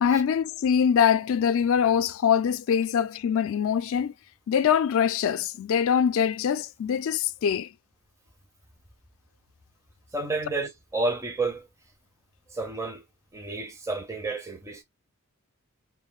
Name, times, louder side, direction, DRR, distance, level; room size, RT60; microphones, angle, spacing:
voice 1, 0.0-4.1 4.5-7.7, left 8 dB, 60° left, 0.3 m, -23 dB
voice 2, 10.1-11.7 12.5-13.0 13.3-14.8, right 3 dB, 15° right, 0.5 m, -30 dB
2.5 x 2.1 x 3.7 m
head